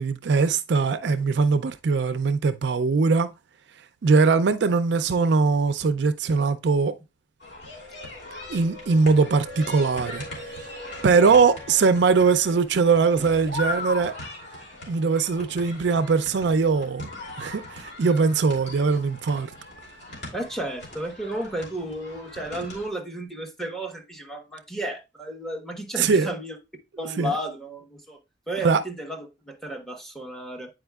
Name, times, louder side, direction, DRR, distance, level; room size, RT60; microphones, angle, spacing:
voice 1, 0.0-3.3 4.0-6.9 8.5-10.2 11.0-14.1 14.9-17.1 17.4-19.5 26.0-26.3 27.2-27.4 28.6-28.8, right 4 dB, 65° right, 0.4 m, -21 dB
sound 1, 7.4-22.9, left 2 dB, 65° left, 2.6 m, -39 dB
Wind, 8.1-12.4 12.7-12.8, right 2 dB, 30° right, 1.0 m, -44 dB
Wind instrument woodwind instrument, 9.1-12.7, left 4 dB, 40° left, 2.8 m, -45 dB
voice 2, 20.3-26.5 27.0-28.2 28.5-30.7, right 1 dB, ahead, 1.2 m, -33 dB
8.7 x 4.9 x 2.3 m
head